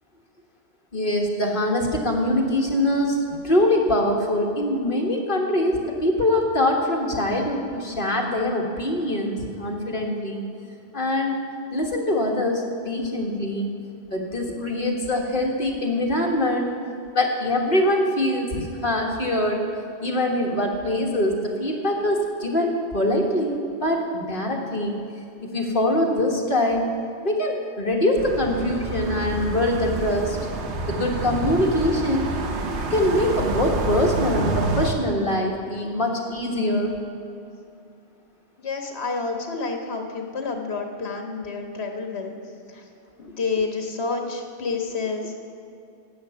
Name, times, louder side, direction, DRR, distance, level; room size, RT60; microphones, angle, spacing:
voice 1, 0.9-10.4 10.9-11.4 11.7-13.7 14.1-16.7 17.1-19.6 20.0-25.0 25.4-26.9 27.2-30.4 30.9-32.3 32.9-36.9, left 1 dB, 50° left, 0 dB, 1.6 m, -23 dB
sound 1, 28.2-34.9, right 2 dB, 85° right, 1.2 m, -28 dB
voice 2, 38.6-42.4 42.7-42.8 43.2-45.3, left 4 dB, 70° left, 3 dB, 1.6 m, -29 dB
11.0 x 8.4 x 6.9 m, 2.6 s
omnidirectional pair, 1.1 m